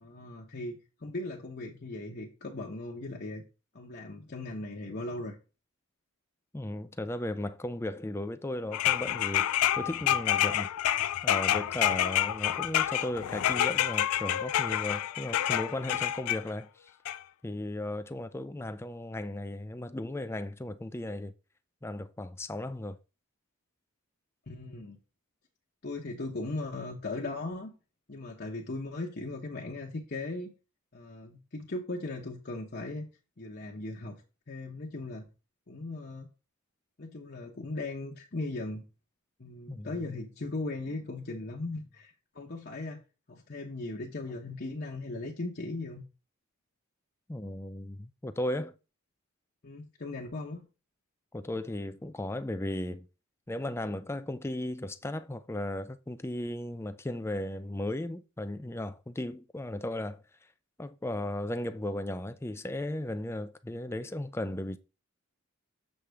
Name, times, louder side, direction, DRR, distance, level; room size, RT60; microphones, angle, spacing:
voice 1, 0.0-3.4 3.7-5.4 24.5-25.0 25.8-27.7 28.1-30.5 30.9-33.1 33.4-34.2 34.5-35.3 35.7-36.3 37.0-38.8 39.4-43.0 43.3-46.0 49.6-50.7, left 2 dB, 45° left, 0.9 m, -38 dB
voice 2, 6.5-11.0 11.2-16.9 17.4-21.3 21.8-23.0 39.7-40.0 47.3-48.7 51.3-53.1 53.5-60.2 60.8-64.8, left 1 dB, 10° left, 0.4 m, -36 dB
sound 1, 8.7-16.4 17.1-17.2, left 11 dB, 90° left, 0.4 m, -28 dB
7.2 x 6.4 x 3.4 m
head